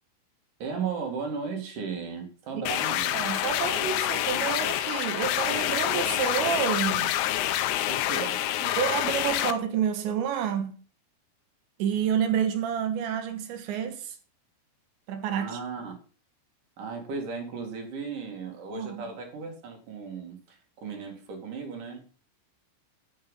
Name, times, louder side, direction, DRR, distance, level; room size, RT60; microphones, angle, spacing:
voice 1, 0.6-3.3 7.9-8.4 15.3-15.9 16.8-22.1, right 5 dB, 50° right, 3.1 m, -36 dB
sound 1, 2.7-9.5, left 13 dB, 85° left, 2.4 m, -27 dB
voice 2, 3.1-7.1 7.4-7.8 8.2-10.7 11.8-14.2 15.1-15.6 18.7-19.0, right 8 dB, 75° right, 3.4 m, -29 dB
13.5 x 6.8 x 5.5 m
omnidirectional pair, 5.8 m